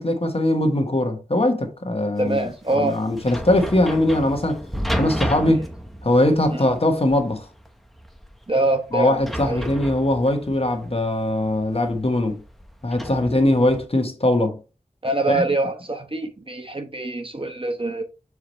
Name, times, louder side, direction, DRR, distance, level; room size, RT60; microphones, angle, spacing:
voice 1, 0.0-2.5 2.7-4.6 5.0-5.6 6.0-7.4 8.9-12.4 12.8-14.6 15.3-15.4, left 1 dB, 50° left, 1.3 m, -21 dB
sound 1, 2.2-13.8, equal, ahead, 0.9 m, -33 dB
voice 2, 2.2-3.0 5.5-5.6 6.5-6.7 8.5-9.7 13.2-13.4 15.0-18.0, right 2 dB, 40° right, 0.9 m, -25 dB
6.5 x 4.8 x 3.1 m
wide cardioid pair, 45°, 13 cm